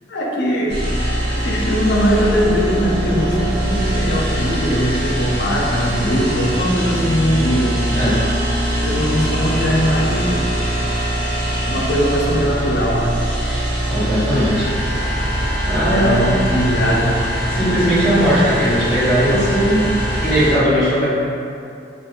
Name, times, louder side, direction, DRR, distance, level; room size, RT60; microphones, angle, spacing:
voice 1, 0.1-0.8 1.4-7.8 8.8-10.6 11.7-13.2 15.9-17.2, equal, 65° left, -2 dB, 0.5 m, -20 dB
sound 1, 0.7-20.5, equal, 65° right, 1.3 m, -22 dB
voice 2, 7.8-8.2 13.9-14.7 15.6-16.4 17.5-19.9 20.2-21.0, equal, 5° left, -15 dB, 1.2 m, -18 dB
2.5 x 2.4 x 3.5 m, 2.5 s
head